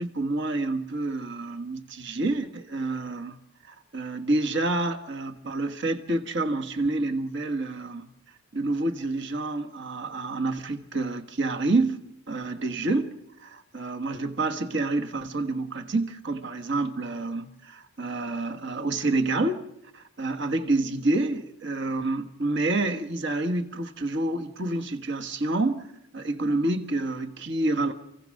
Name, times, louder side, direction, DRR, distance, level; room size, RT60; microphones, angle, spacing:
voice 1, 0.0-3.4 3.6-8.1 8.5-12.0 12.3-19.6 19.9-25.9 26.1-27.9, right 2 dB, 60° right, 6 dB, 1.5 m, -28 dB
28.5 x 16.5 x 6.5 m, 0.86 s
head